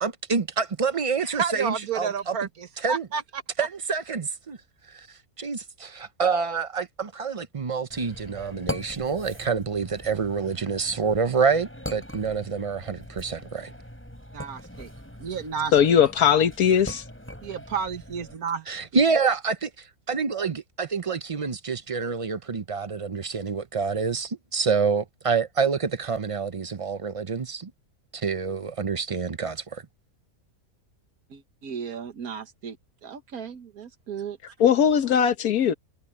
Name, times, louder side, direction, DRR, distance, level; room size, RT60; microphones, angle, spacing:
voice 1, 0.0-2.1 2.8-3.0 3.6-4.6 4.9-5.1 5.4-13.7 18.7-27.7 28.1-29.8, right 5 dB, 40° right, 0.5 m, -27 dB
voice 2, 1.2-3.7 14.3-14.9 15.2-16.0 17.4-18.9 31.3-32.8 33.0-34.4, right 6 dB, 85° right, 1.8 m, -32 dB
sound 1, 7.9-18.4, equal, 10° left, 5.8 m, -40 dB
voice 3, 15.7-17.0 34.6-35.7, left 8 dB, 90° left, 1.5 m, -19 dB
omnidirectional pair, 1.5 m